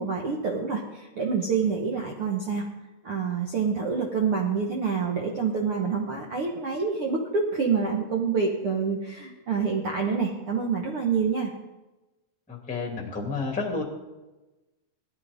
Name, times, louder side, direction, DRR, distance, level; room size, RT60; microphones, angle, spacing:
voice 1, 0.0-2.6 3.0-11.5, right 5 dB, 85° right, 0 dB, 1.2 m, -27 dB
voice 2, 12.5-13.8, left 4 dB, 5° left, 1 dB, 1.3 m, -30 dB
19.5 x 13.5 x 3.6 m, 1.1 s
omnidirectional pair, 4.6 m